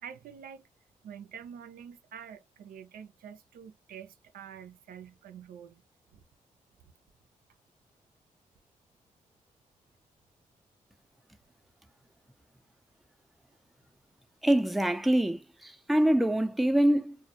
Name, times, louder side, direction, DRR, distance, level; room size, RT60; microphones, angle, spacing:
voice 1, 0.0-0.6 1.0-5.8, right 8 dB, 85° right, 0.4 m, -46 dB
voice 2, 14.4-17.2, right 1 dB, ahead, 0.4 m, -25 dB
2.1 x 2.1 x 2.7 m
supercardioid pair, 45°, 15 cm